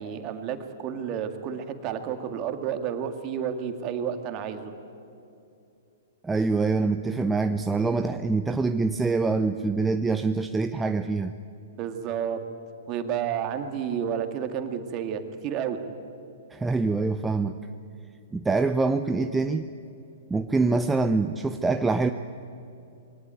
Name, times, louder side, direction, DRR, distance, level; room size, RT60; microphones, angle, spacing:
voice 1, 0.0-4.7 11.7-12.4 12.9-15.8, right 8 dB, 35° right, 7 dB, 2.1 m, -31 dB
voice 2, 6.2-11.3 16.5-17.6 18.3-19.7 20.3-22.1, right 3 dB, 10° right, 8 dB, 0.6 m, -25 dB
23.0 x 18.5 x 9.2 m, 2.7 s
figure-of-eight pair, 110°, 0 cm